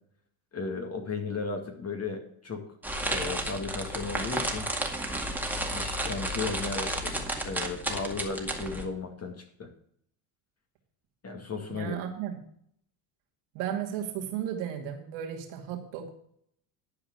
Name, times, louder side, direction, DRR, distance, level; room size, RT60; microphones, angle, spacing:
voice 1, 0.5-2.6 3.1-4.7 5.7-9.7 11.2-12.0, left 4 dB, 30° left, 4 dB, 2.0 m, -35 dB
sound 1, 2.8-8.9, right 1 dB, 5° right, 2.1 m, -32 dB
voice 2, 11.7-12.4 13.5-16.1, right 9 dB, 75° right, 2 dB, 2.5 m, -34 dB
11.5 x 5.0 x 7.7 m, 0.66 s
supercardioid pair, 90°, 47 cm